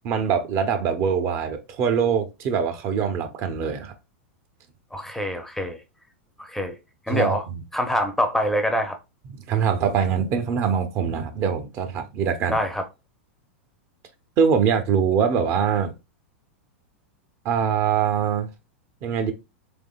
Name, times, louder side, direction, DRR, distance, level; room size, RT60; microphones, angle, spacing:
voice 1, 0.0-3.9 7.1-7.6 9.3-12.6 14.4-15.9 17.4-18.5 19.0-19.3, right 7 dB, 40° right, 0.7 m, -23 dB
voice 2, 4.9-5.8 6.4-6.8 7.1-7.4 7.7-9.0 12.5-12.9, left 1 dB, 5° left, 0.6 m, -25 dB
3.5 x 3.4 x 2.3 m
hypercardioid pair, 105°, 7 cm